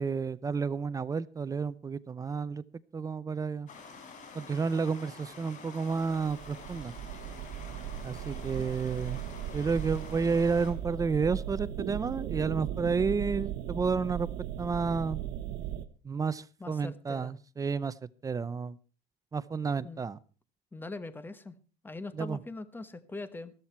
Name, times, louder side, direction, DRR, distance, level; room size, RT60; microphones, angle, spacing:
voice 1, 0.0-2.6 2.9-3.7 4.3-6.9 8.0-9.2 9.5-14.3 14.6-15.2 16.0-17.9 18.2-18.8 19.3-20.2 22.2-22.4, right 5 dB, 20° right, 17 dB, 0.5 m, -31 dB
Stream, 3.7-10.7, left 4 dB, 45° left, 4.3 m, -48 dB
sound 1, 5.9-15.9, right 11 dB, 75° right, 1.1 m, -37 dB
voice 2, 16.6-17.4 19.8-20.0 20.7-21.5 21.8-23.5, left 3 dB, 10° left, 13 dB, 1.1 m, -42 dB
14.0 x 13.5 x 4.4 m, 0.37 s
cardioid pair, 140°, 18 cm